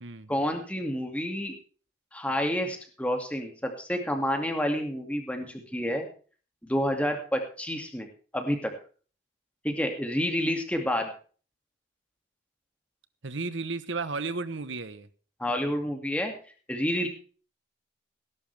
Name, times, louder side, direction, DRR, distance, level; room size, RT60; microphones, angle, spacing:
voice 1, 0.3-1.6 2.1-6.1 6.6-8.1 8.3-8.7 9.6-11.1 15.4-16.3 16.7-17.1, equal, 5° left, 4 dB, 2.3 m, -29 dB
voice 2, 13.2-15.1, right 3 dB, 80° right, 14 dB, 1.1 m, -33 dB
18.0 x 11.0 x 3.5 m, 0.40 s
head